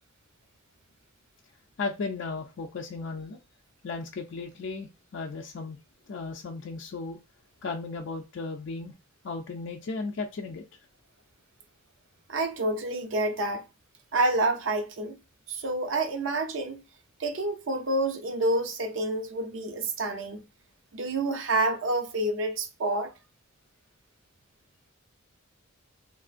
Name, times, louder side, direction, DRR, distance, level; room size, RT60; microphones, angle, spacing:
voice 1, 1.8-3.4 3.8-5.8 6.1-7.2 7.6-8.9 9.2-10.6, left 4 dB, 60° left, 0.4 m, -35 dB
voice 2, 12.3-13.6 14.1-15.2 15.5-16.8 17.2-20.4 20.9-23.1, right 2 dB, 70° right, 0.6 m, -28 dB
3.4 x 2.4 x 2.4 m
head